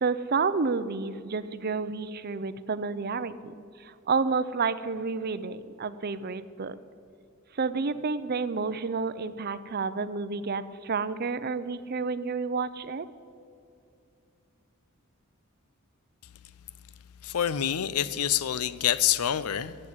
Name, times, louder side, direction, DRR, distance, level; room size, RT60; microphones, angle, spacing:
voice 1, 0.0-3.5 3.8-6.8 7.6-13.1, right 4 dB, 45° right, 14 dB, 0.6 m, -30 dB
voice 2, 17.2-19.8, left 10 dB, 90° left, 16 dB, 0.6 m, -26 dB
15.0 x 7.9 x 7.7 m, 2.5 s
head